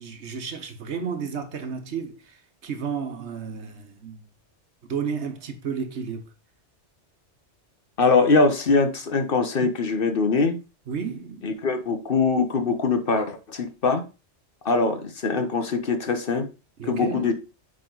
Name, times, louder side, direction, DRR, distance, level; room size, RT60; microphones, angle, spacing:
voice 1, 0.0-4.2 4.9-6.3 10.9-11.5 16.8-17.3, right 6 dB, 70° right, 1.3 m, -32 dB
voice 2, 8.0-10.6 11.4-14.0 14.6-16.5 16.8-17.3, left 4 dB, 50° left, 1.1 m, -22 dB
8.8 x 3.8 x 3.8 m
omnidirectional pair, 1.2 m